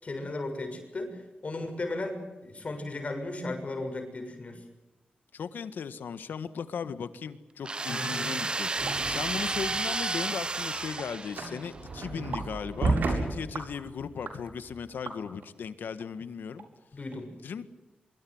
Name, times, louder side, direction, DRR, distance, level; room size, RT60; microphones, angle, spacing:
voice 1, 0.0-4.6 7.9-8.3 16.9-17.3, left 2 dB, 45° left, 5 dB, 6.8 m, -36 dB
voice 2, 5.3-16.7 17.4-17.7, left 6 dB, 90° left, 12 dB, 1.6 m, -37 dB
sound 1, 7.6-11.7, right 3 dB, 30° right, 0.8 m, -32 dB
sound 2, 8.8-9.0 9.4-9.5 9.9-10.0 10.3-10.4 11.0-11.1 11.6-11.7 12.3-12.5 13.0-13.2 13.5-13.7 14.2-14.4 15.1-15.5 16.0-16.1 16.6-16.7 17.1-17.2, right 4 dB, 65° right, 5.1 m, -40 dB
sound 3, 8.8-9.9 10.3-14.8, right 3 dB, 80° right, 7.4 m, -32 dB
25.0 x 23.5 x 8.0 m, 1.1 s
wide cardioid pair, 90°, 3 cm